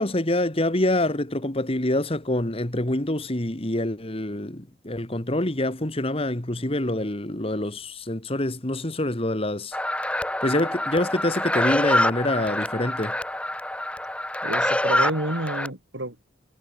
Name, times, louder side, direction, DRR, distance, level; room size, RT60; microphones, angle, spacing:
voice 1, 0.0-9.8 10.4-13.2, left 1 dB, 30° left, 1.9 m, -26 dB
sound 1, 9.7-15.7, left 1 dB, 5° left, 2.6 m, -26 dB
voice 2, 14.4-16.2, right 1 dB, 70° right, 4.8 m, -29 dB
head